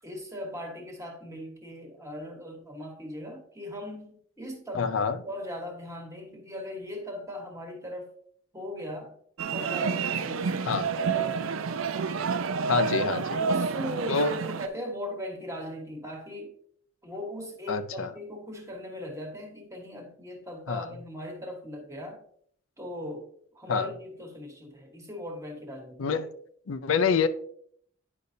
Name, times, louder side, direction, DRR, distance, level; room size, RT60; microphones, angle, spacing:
voice 1, 0.0-4.9 5.2-8.1 8.5-9.2 9.5-11.4 13.0-13.1 13.4-16.5 17.0-22.2 22.8-23.3 23.5-26.2, left 1 dB, 15° right, 1.3 m, -39 dB
voice 2, 4.7-5.2 10.6-10.9 12.7-13.2 14.1-14.4 17.7-18.1 20.7-20.9 23.7-23.9 26.0-26.3 26.7-27.3, left 5 dB, 80° left, 0.5 m, -26 dB
sound 1, 9.4-14.7, right 5 dB, 85° right, 0.5 m, -29 dB
9.7 x 5.3 x 2.7 m
head